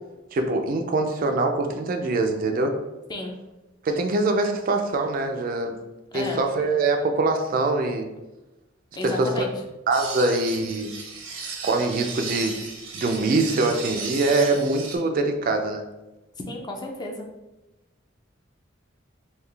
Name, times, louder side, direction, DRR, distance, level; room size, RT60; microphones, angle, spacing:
voice 1, 0.3-2.8 3.8-5.8 6.1-8.1 9.0-9.5 9.9-10.9 11.6-12.6 12.9-15.8, right 2 dB, 45° right, 5 dB, 0.4 m, -23 dB
voice 2, 6.1-6.4 8.9-9.5 16.5-17.3, left 1 dB, 20° left, 1 dB, 0.4 m, -32 dB
sound 1, 9.9-15.0, right 4 dB, 75° right, 0.7 m, -35 dB
3.8 x 2.3 x 3.2 m, 1.0 s
head